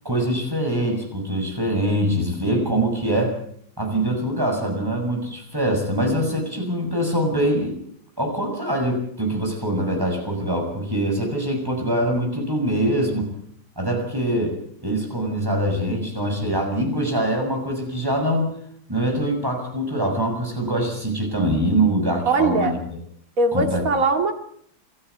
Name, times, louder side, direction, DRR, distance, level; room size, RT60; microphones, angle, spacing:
voice 1, 0.0-3.3 3.8-7.8 8.2-13.3 13.8-18.5 18.9-23.0 23.5-23.8, right 1 dB, 10° right, 2 dB, 6.7 m, -23 dB
voice 2, 22.3-22.7 23.4-24.3, right 3 dB, 45° right, 6 dB, 2.7 m, -20 dB
28.0 x 13.0 x 8.4 m, 0.66 s
omnidirectional pair, 2.1 m